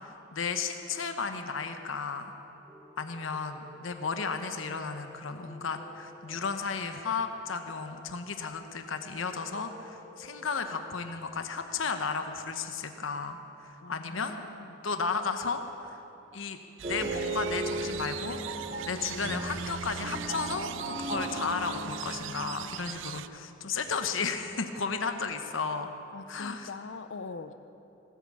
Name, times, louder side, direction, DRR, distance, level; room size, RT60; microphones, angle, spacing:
voice 1, 0.0-2.3 3.0-13.4 13.6-14.4 14.8-16.0 16.3-16.6 16.9-18.4 18.8-25.9 26.3-26.7, left 5 dB, 80° left, 7 dB, 1.0 m, -34 dB
sound 1, 2.7-11.1, left 1 dB, ahead, 1.8 m, -53 dB
voice 2, 13.8-14.9 26.1-27.5, left 4 dB, 65° left, 11 dB, 0.6 m, -42 dB
sound 2, 16.8-22.4, right 2 dB, 35° right, 1.4 m, -36 dB
sound 3, 16.8-23.3, right 12 dB, 70° right, 0.4 m, -42 dB
17.5 x 8.4 x 8.6 m, 2.9 s
head